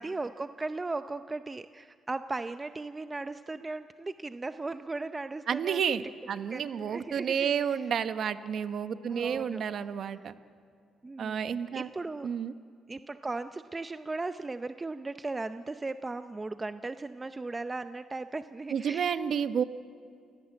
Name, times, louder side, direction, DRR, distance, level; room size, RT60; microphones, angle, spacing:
voice 1, 0.0-5.8 6.5-7.5 9.1-9.6 11.0-12.3 12.9-19.2, right 3 dB, 20° right, 10 dB, 0.6 m, -37 dB
voice 2, 5.5-10.3 11.2-11.9 12.2-12.5 18.7-19.6, right 7 dB, 60° right, 10 dB, 1.0 m, -30 dB
29.0 x 17.0 x 7.7 m, 2.3 s
cardioid pair, 90°, 0 cm